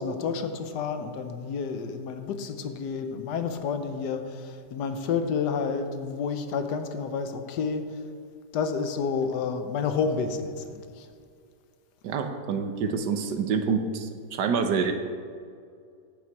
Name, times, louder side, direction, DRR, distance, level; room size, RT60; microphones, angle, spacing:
voice 1, 0.0-7.8 8.5-11.1, left 5 dB, 75° left, 8 dB, 1.4 m, -30 dB
voice 2, 12.0-14.9, right 5 dB, 75° right, 7 dB, 1.4 m, -27 dB
10.5 x 8.6 x 4.7 m, 2.3 s
omnidirectional pair, 1.9 m